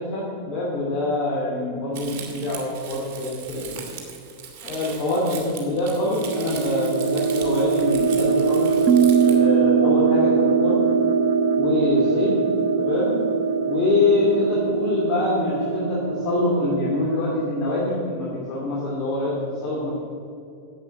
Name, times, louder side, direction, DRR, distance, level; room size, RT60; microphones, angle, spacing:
voice 1, 0.0-3.8 4.6-8.7 9.2-10.8 11.6-12.5 12.8-13.2 13.7-19.9, left 2 dB, 40° left, -5 dB, 2.6 m, -25 dB
Crumpling crinkling, 1.9-9.4, right 7 dB, 45° right, 2.4 m, -39 dB
sound 1, 5.6-17.5, right 5 dB, 70° right, 0.8 m, -23 dB
sound 2, 8.9-13.8, right 9 dB, 20° right, 0.3 m, -24 dB
11.0 x 8.3 x 7.8 m, 2.5 s
figure-of-eight pair, 90°, 0 cm